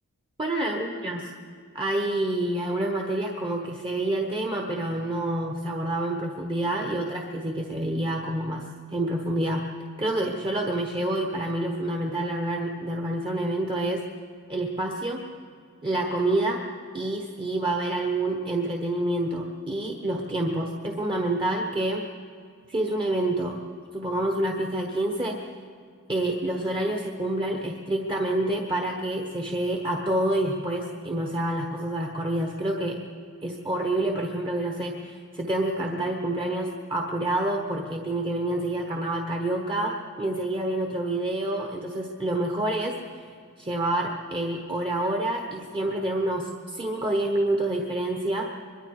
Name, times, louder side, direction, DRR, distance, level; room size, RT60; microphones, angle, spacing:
voice 1, 0.4-1.2 1.7-9.7 10.0-14.0 14.5-15.2 15.8-16.6 16.9-22.0 22.7-23.6 23.9-25.4 26.1-33.0 33.4-43.0 43.6-48.5, right 1 dB, 25° right, 1 dB, 1.2 m, -28 dB
24.0 x 22.5 x 4.9 m, 2.3 s
head